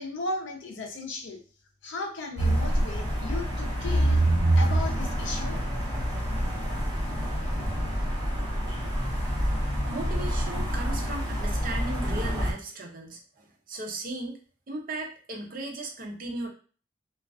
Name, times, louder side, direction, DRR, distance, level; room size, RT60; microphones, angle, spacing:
voice 1, 0.0-1.4 1.8-4.3 4.5-5.6, left 2 dB, 70° left, 2 dB, 0.5 m, -35 dB
sound 1, 2.4-12.5, right 1 dB, 20° right, 1.0 m, -27 dB
voice 2, 9.9-14.4 14.7-16.5, right 2 dB, 50° right, 1 dB, 0.5 m, -36 dB
2.3 x 2.3 x 2.3 m, 0.40 s
head